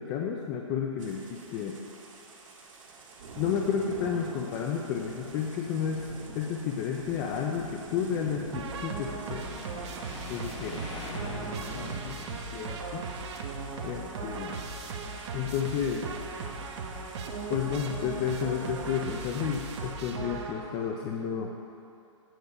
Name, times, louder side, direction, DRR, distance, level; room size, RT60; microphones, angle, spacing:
voice 1, 0.0-1.8 3.4-6.0 6.3-9.5 10.3-10.8 11.7-13.0 13.8-14.6 15.3-16.1 17.5-21.5, left 7 dB, 25° left, 1 dB, 0.5 m, -31 dB
sound 1, 1.0-19.9, right 3 dB, 70° right, 1.9 m, -46 dB
sound 2, 8.3-14.4, left 2 dB, 70° left, 1.8 m, -45 dB
sound 3, 8.5-20.9, right 4 dB, 55° right, 1.0 m, -38 dB
9.0 x 4.7 x 6.6 m, 2.7 s
hypercardioid pair, 140°, 17 cm